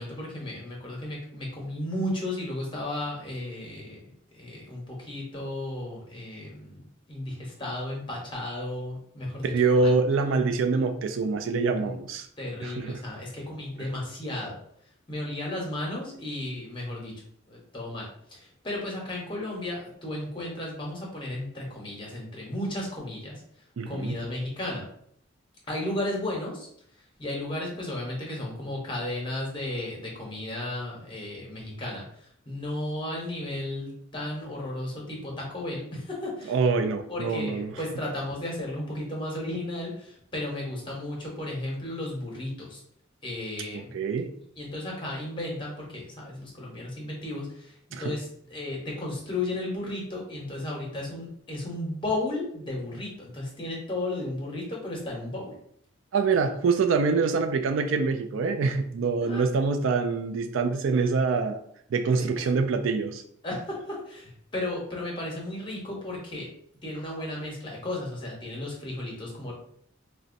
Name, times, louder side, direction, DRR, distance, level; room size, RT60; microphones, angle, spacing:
voice 1, 0.0-4.0 4.3-9.9 11.8-12.0 12.4-14.6 15.1-17.1 17.5-18.4 18.6-23.4 23.9-24.8 25.7-26.7 27.2-32.0 32.5-36.5 37.1-42.8 43.2-43.9 44.6-47.7 48.0-55.5 59.2-59.5 62.0-62.4 63.4-66.5 66.8-69.5, left 1 dB, 25° left, -2 dB, 0.8 m, -34 dB
voice 2, 9.4-12.3 12.6-13.0 13.8-13.9 23.8-24.2 36.5-37.8 43.7-44.3 47.9-48.1 56.1-61.6 61.9-63.2, right 4 dB, 75° right, 8 dB, 0.3 m, -25 dB
3.9 x 2.2 x 2.5 m, 0.66 s
head